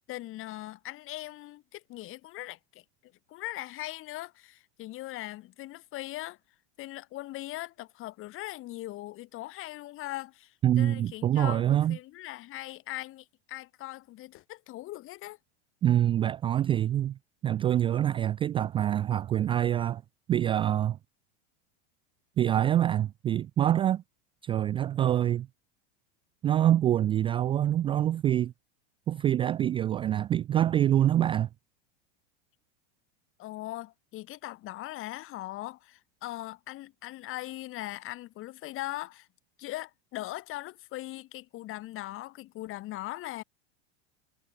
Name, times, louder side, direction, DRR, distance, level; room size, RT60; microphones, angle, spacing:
voice 1, 0.1-2.8 3.3-6.4 6.8-15.4 33.4-39.3 39.6-43.4, left 16 dB, 40° left, 2.2 m, -40 dB
voice 2, 10.6-12.0 15.8-17.2 17.4-20.0 20.3-21.0 22.4-24.0 24.4-25.5 26.4-28.5 29.1-31.5, right 11 dB, 15° right, 0.3 m, -25 dB
supercardioid pair, 135°, 34 cm